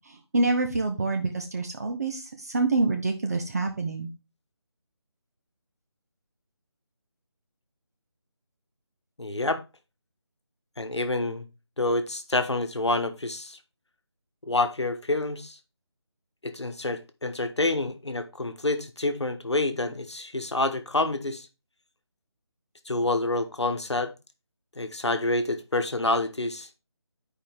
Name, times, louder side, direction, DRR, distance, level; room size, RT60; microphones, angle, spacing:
voice 1, 0.3-2.2 2.5-4.1, right 3 dB, 35° right, 0.9 m, -26 dB
voice 2, 9.2-9.6 10.8-11.4 11.8-13.6 14.5-15.6 16.4-21.5 22.8-24.1 24.8-26.7, left 2 dB, 75° left, 1.3 m, -27 dB
10.5 x 5.0 x 3.5 m
figure-of-eight pair, 160°, 14 cm